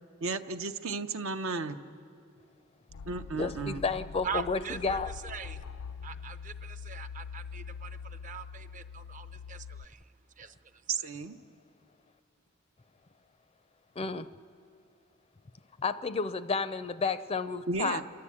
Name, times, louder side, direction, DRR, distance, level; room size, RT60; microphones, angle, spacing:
voice 1, 0.2-1.8 3.0-3.8 10.9-11.4 17.7-18.0, right 4 dB, 70° right, 8 dB, 0.8 m, -33 dB
sound 1, 2.9-9.9, left 6 dB, 90° left, 0.4 m, -43 dB
voice 2, 3.4-5.1 14.0-14.3 15.8-18.0, left 4 dB, 30° left, 13 dB, 0.4 m, -31 dB
voice 3, 4.2-5.6 6.0-10.9, right 6 dB, 40° right, 11 dB, 0.6 m, -42 dB
28.0 x 11.5 x 8.5 m, 2.4 s
head